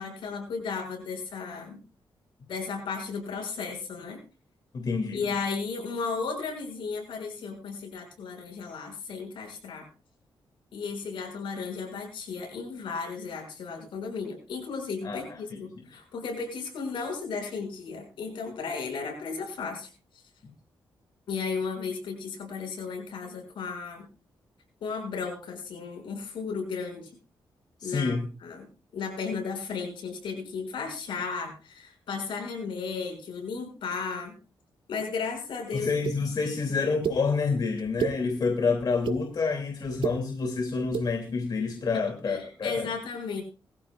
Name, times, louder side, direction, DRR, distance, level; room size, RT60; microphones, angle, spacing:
voice 1, 0.0-1.8 2.5-4.2 5.1-9.8 10.7-19.9 21.3-24.1 24.8-27.1 27.8-28.7 28.9-34.3 34.9-35.9 36.4-36.8 41.9-43.4, left 5 dB, 85° left, 2 dB, 6.4 m, -34 dB
voice 2, 4.7-5.2 15.0-15.6 27.8-28.3 35.7-42.9, left 4 dB, 55° left, 3 dB, 2.8 m, -28 dB
sound 1, 36.0-36.2 37.0-37.2 37.8-38.2 38.8-39.2 39.8-40.2 40.8-41.1, right 7 dB, 75° right, 1.6 m, -29 dB
22.0 x 14.5 x 2.5 m, 0.33 s
cardioid pair, 95°, 8 cm